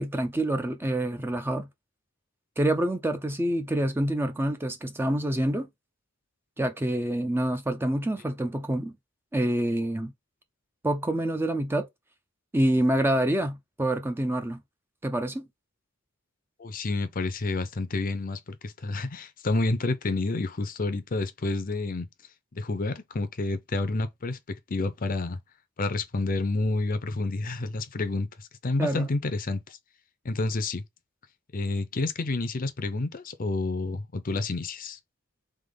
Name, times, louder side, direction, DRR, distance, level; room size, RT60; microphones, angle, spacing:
voice 1, 0.0-1.7 2.6-5.7 6.6-8.9 9.3-10.1 10.8-11.9 12.5-14.6 15.0-15.5 28.8-29.1, right 1 dB, 10° right, 0.5 m, -27 dB
voice 2, 16.6-22.1 22.5-24.4 24.7-25.4 25.8-29.8 30.2-30.8 31.5-35.0, left 2 dB, 40° left, 0.6 m, -29 dB
3.5 x 3.4 x 3.8 m
head